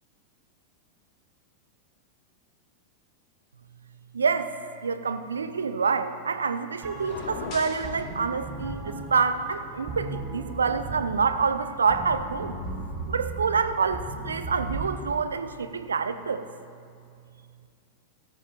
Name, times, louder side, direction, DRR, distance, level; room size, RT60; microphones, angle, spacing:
voice 1, 4.1-4.5 4.8-12.6 13.1-16.4, right 5 dB, 70° right, 11 dB, 0.6 m, -27 dB
sound 1, 6.8-15.0, right 3 dB, 40° right, 2.7 m, -37 dB
sound 2, 7.0-7.9, left 5 dB, 40° left, 1.3 m, -38 dB
16.5 x 13.0 x 2.5 m, 2.3 s
figure-of-eight pair, 90°, 0 cm